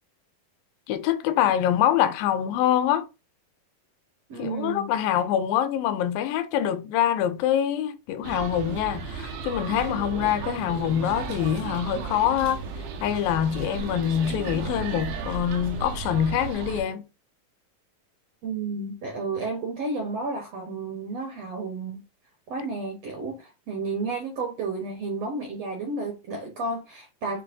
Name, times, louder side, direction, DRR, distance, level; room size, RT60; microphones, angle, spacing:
voice 1, 0.9-3.1 4.4-12.7 13.0-17.0, left 10 dB, 80° left, 2.2 m, -25 dB
voice 2, 4.3-4.9 18.4-22.0 22.5-27.4, right 3 dB, 70° right, 1.5 m, -32 dB
sound 1, 8.2-16.8, right 6 dB, 90° right, 2.7 m, -34 dB
6.8 x 2.9 x 2.6 m
omnidirectional pair, 4.1 m